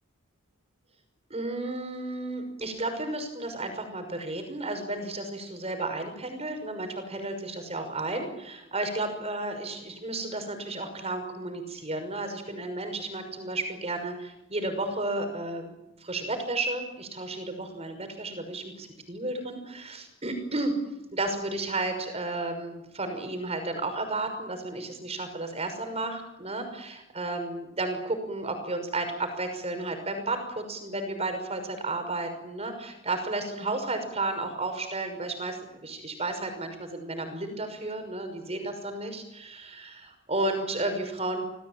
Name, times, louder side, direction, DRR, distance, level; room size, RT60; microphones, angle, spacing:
voice 1, 1.3-20.7 21.1-41.4, right 2 dB, 30° right, 7 dB, 6.0 m, -33 dB
28.0 x 19.5 x 9.1 m, 0.90 s
head